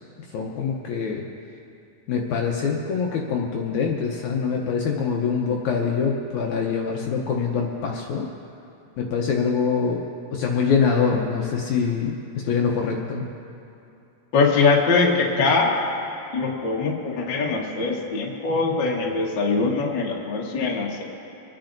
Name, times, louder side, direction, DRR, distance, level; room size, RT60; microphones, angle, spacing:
voice 1, 0.3-1.3 2.1-8.2 9.0-10.0 10.3-12.1 12.4-13.3, left 6 dB, 70° left, -1 dB, 2.0 m, -24 dB
voice 2, 14.3-15.8 16.3-21.0, left 4 dB, 50° left, -2 dB, 1.5 m, -22 dB
29.0 x 10.0 x 2.6 m, 2.7 s
omnidirectional pair, 3.9 m